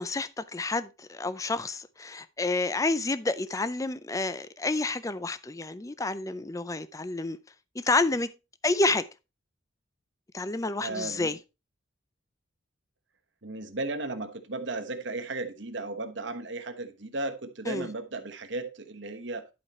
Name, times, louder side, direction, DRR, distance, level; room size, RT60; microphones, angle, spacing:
voice 1, 0.0-7.4 7.8-8.3 8.6-9.0 10.3-11.4 17.7-17.9, left 2 dB, 15° left, 0.4 m, -29 dB
voice 2, 10.8-11.4 13.4-19.5, right 2 dB, 60° right, 1.2 m, -35 dB
11.5 x 4.9 x 4.3 m
head